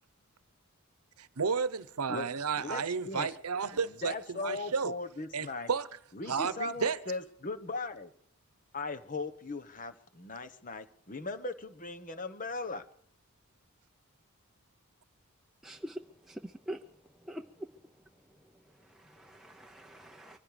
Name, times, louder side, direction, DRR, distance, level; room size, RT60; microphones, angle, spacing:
voice 1, 1.2-4.9 5.3-5.9 6.3-7.0, right 5 dB, 85° right, 0.9 m, -32 dB
voice 2, 2.6-3.3 3.7-5.7 6.1-8.1 8.7-12.8, left 3 dB, 35° left, 1.1 m, -38 dB
voice 3, 15.6-16.8 17.2-17.9 18.4-20.4, equal, ahead, 0.6 m, -45 dB
24.5 x 15.5 x 3.4 m
head